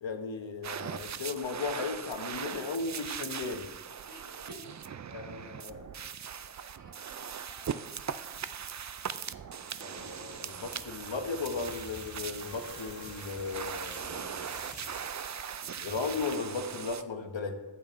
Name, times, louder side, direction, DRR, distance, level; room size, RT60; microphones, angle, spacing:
voice 1, 0.0-3.7 5.1-5.8 9.8-14.6 15.8-17.5, left 4 dB, 70° left, 5 dB, 1.1 m, -36 dB
sound 1, 0.6-17.0, right 7 dB, 40° right, 0.4 m, -40 dB
voice 2, 4.1-4.8 6.0-6.2 6.8-7.9, right 1 dB, 65° right, 0 dB, 2.0 m, -52 dB
sound 2, 9.9-15.1, left 2 dB, 30° left, 1.9 m, -50 dB
8.9 x 7.4 x 3.1 m, 1.3 s
wide cardioid pair, 45°, 47 cm